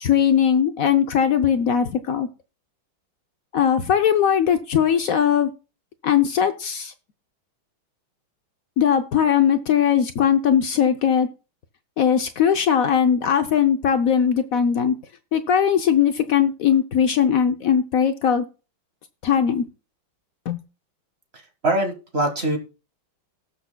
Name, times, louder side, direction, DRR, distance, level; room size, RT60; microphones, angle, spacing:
voice 1, 0.0-2.3 3.5-5.5 6.0-6.9 8.8-11.3 12.0-14.9 15.3-18.4 19.2-19.6 20.5-20.6, left 8 dB, 70° left, 8 dB, 0.8 m, -19 dB
voice 2, 21.3-22.6, right 1 dB, 35° right, 4 dB, 1.8 m, -23 dB
18.5 x 6.7 x 2.2 m, 0.32 s
omnidirectional pair, 2.2 m